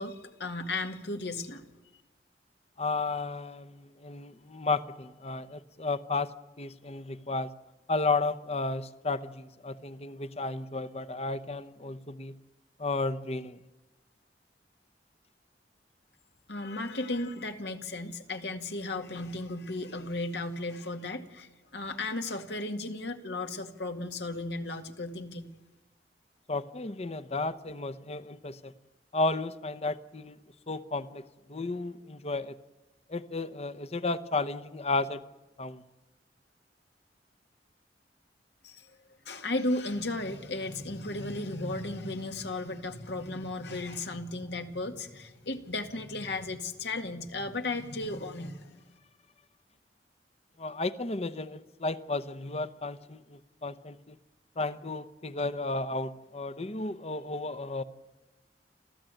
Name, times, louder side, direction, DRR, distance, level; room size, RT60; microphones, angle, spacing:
voice 1, 0.0-1.6 16.5-25.5 38.6-38.9 39.3-48.8, left 2 dB, 75° left, 2.1 m, -35 dB
voice 2, 2.8-7.5 7.9-12.4 12.8-13.6 26.5-28.7 29.1-30.4 30.7-32.6 33.1-35.2 35.6-35.8 50.6-54.2 54.6-57.8, left 3 dB, 35° left, 0.9 m, -33 dB
28.0 x 14.5 x 9.1 m
head